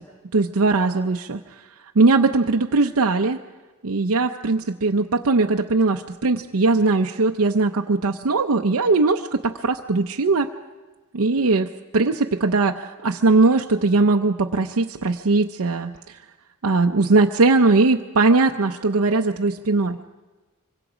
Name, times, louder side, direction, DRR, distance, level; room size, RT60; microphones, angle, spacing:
voice 1, 0.3-1.6 2.0-3.4 3.8-10.5 11.1-15.9 16.6-20.1, right 3 dB, 75° right, 3 dB, 0.7 m, -20 dB
25.0 x 24.0 x 5.0 m, 1.2 s
head